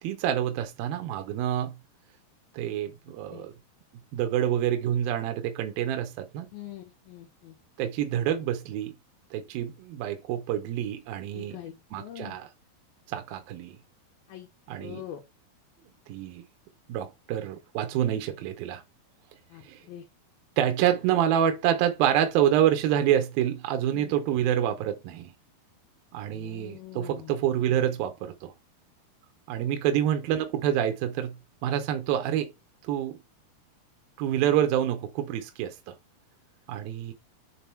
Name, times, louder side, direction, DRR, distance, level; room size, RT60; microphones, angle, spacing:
voice 1, 0.0-1.7 2.5-3.5 4.1-6.5 7.8-9.0 9.3-11.6 11.9-12.5 13.1-13.8 14.7-15.0 16.1-16.5 16.9-18.8 19.6-19.8 20.6-25.3 26.1-28.5 29.5-31.3 31.6-32.5 32.8-33.2 34.2-35.9 36.7-37.1, right 10 dB, 75° right, 2.5 m, -27 dB
voice 2, 6.5-7.5 11.3-12.4 14.3-14.5 14.8-15.2 19.5-19.6 19.9-20.0 23.9-24.1 26.2-27.3, left 12 dB, 70° left, 2.8 m, -43 dB
7.0 x 4.1 x 4.4 m
omnidirectional pair, 4.6 m